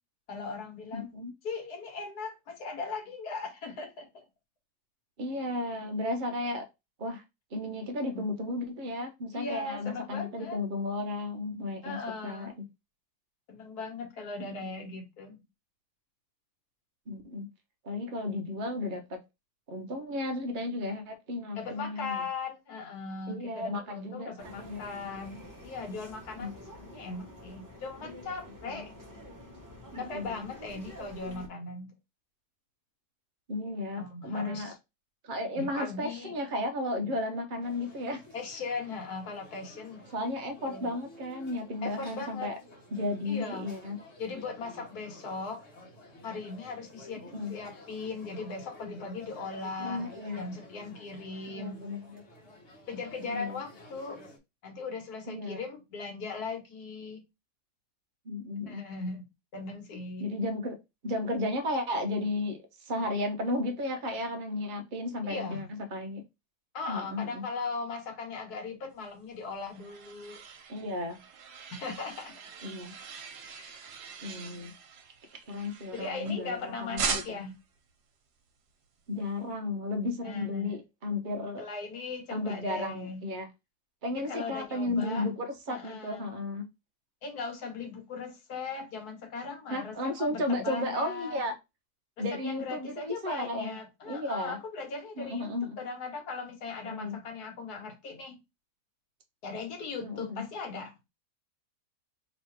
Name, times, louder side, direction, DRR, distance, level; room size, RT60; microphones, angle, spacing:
voice 1, 0.3-1.1 1.4-4.2 8.1-8.3 9.3-10.6 11.8-12.5 13.5-15.4 21.5-28.9 30.0-31.9 34.0-34.7 35.6-36.3 38.3-40.0 40.6-40.9 41.8-42.5 43.2-43.7 44.2-45.6 46.2-50.1 50.4-51.8 52.9-54.2 54.6-57.2 58.7-59.2 59.5-60.3 65.2-65.7 66.7-70.4 71.7-72.7 73.4-73.9 75.9-77.5 80.2-80.8 81.6-83.2 84.1-85.3 85.7-86.3 87.2-91.4 92.2-95.5 95.8-98.4 99.4-100.9, left 4 dB, 75° left, 1.6 m, -39 dB
voice 2, 0.9-1.3 5.2-6.7 7.0-7.2 7.5-12.6 14.4-14.9 17.1-17.5 17.8-19.2 19.7-22.3 23.3-25.0 26.4-26.5 28.7-28.8 29.9-30.5 33.5-34.7 35.2-38.2 40.1-42.5 42.9-44.0 47.3-47.5 49.8-50.4 51.5-52.2 53.2-53.6 55.3-55.6 58.2-58.8 60.2-60.8 61.0-65.7 65.9-66.2 66.9-67.4 70.7-71.2 72.6-72.9 74.2-74.7 75.3-77.4 79.1-81.7 82.3-83.5 84.0-86.7 89.7-91.5 92.2-93.8 94.1-94.6 95.2-95.8 96.8-97.2 100.0-100.4, left 2 dB, 40° right, 0.8 m, -34 dB
sound 1, 24.4-31.5, equal, 15° right, 1.0 m, -48 dB
sound 2, 37.6-54.4, left 2 dB, 50° left, 1.3 m, -52 dB
sound 3, 69.2-76.5 77.0-77.6, right 5 dB, 80° right, 1.4 m, -40 dB
3.1 x 3.0 x 4.4 m
omnidirectional pair, 1.7 m